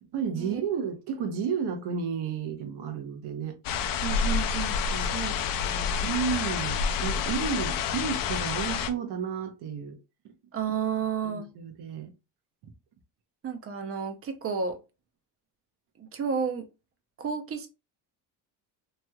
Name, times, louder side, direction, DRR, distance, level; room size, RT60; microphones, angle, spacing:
voice 1, 0.0-3.6 4.9-5.2 6.0-10.0 10.2-10.3 11.2-12.1, right 6 dB, 65° right, 0.9 m, -32 dB
sound 1, 3.6-8.9, left 6 dB, 55° left, 0.5 m, -28 dB
voice 2, 4.0-5.3 5.6-6.0 10.5-11.5 13.4-14.8 16.0-16.7 17.2-17.7, right 6 dB, 35° right, 0.6 m, -32 dB
3.1 x 2.8 x 2.3 m
cardioid pair, 115°, 43 cm